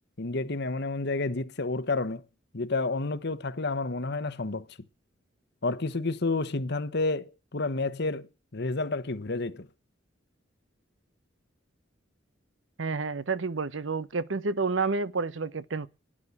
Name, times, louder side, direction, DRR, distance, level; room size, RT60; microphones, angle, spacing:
voice 1, 0.2-2.2 2.5-4.8 5.6-9.7, left 3 dB, 60° left, 1.1 m, -30 dB
voice 2, 12.8-15.9, right 4 dB, 75° right, 0.9 m, -29 dB
12.5 x 9.9 x 8.6 m
head